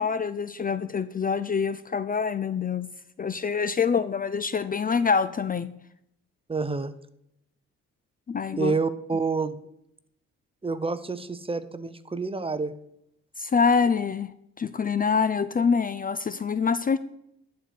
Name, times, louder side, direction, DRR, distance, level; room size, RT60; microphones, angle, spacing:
voice 1, 0.0-2.9 3.2-5.7 8.3-8.7 13.4-17.0, left 5 dB, 30° left, 14 dB, 0.5 m, -25 dB
voice 2, 6.5-6.9 8.6-9.6 10.6-12.7, right 4 dB, 20° right, 13 dB, 0.8 m, -28 dB
10.5 x 4.6 x 8.1 m, 0.76 s
cardioid pair, 90°, 30 cm